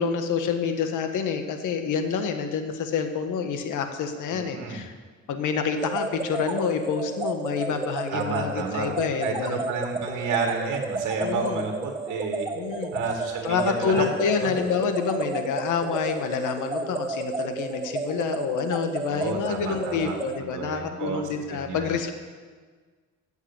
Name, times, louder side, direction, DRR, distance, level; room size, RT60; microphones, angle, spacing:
voice 1, 0.0-4.9 5.3-9.6 11.2-11.6 12.5-12.9 13.4-22.1, left 6 dB, 85° left, 6 dB, 1.6 m, -28 dB
voice 2, 4.3-4.8 8.1-8.9 9.2-12.5 12.9-14.1 14.4-14.5 19.1-20.2 20.5-21.2 21.5-21.9, right 4 dB, 70° right, 2 dB, 2.1 m, -31 dB
sound 1, 5.8-20.4, right 3 dB, 15° right, 0.6 m, -32 dB
16.5 x 8.2 x 7.4 m, 1.5 s
cardioid pair, 90°, 30 cm